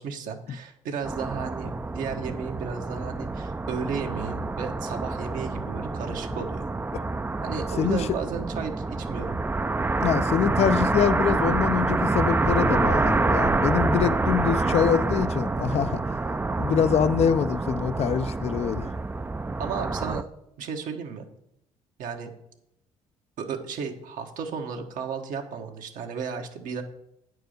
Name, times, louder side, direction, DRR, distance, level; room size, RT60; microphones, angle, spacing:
voice 1, 0.0-6.7 7.4-9.4 19.6-20.3 20.6-21.3 22.0-22.3 23.4-26.8, right 6 dB, 75° right, 1.3 m, -34 dB
sound 1, 1.0-20.2, right 3 dB, 15° right, 0.4 m, -27 dB
voice 2, 10.0-16.0 16.6-18.9, left 8 dB, 50° left, 0.5 m, -24 dB
9.1 x 4.7 x 6.5 m
supercardioid pair, 75°, 14 cm